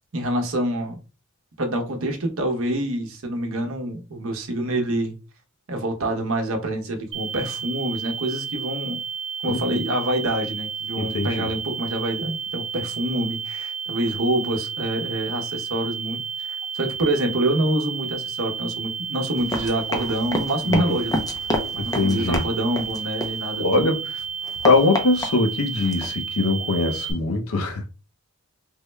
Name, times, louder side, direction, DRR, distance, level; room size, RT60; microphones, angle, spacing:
voice 1, 0.1-1.0 1.6-5.2 5.7-9.0 9.4-16.5 16.7-21.2 21.7-23.7, right 1 dB, 65° right, 0.8 m, -26 dB
sound 1, 7.1-27.1, right 6 dB, 25° right, 0.8 m, -32 dB
voice 2, 9.5-9.8 11.0-11.5 20.6-21.0 21.8-22.4 23.6-24.0 24.6-27.9, left 3 dB, 75° left, 0.6 m, -22 dB
Run, 19.4-23.8 24.2-26.1, left 1 dB, 15° left, 0.5 m, -29 dB
3.5 x 2.2 x 3.1 m
head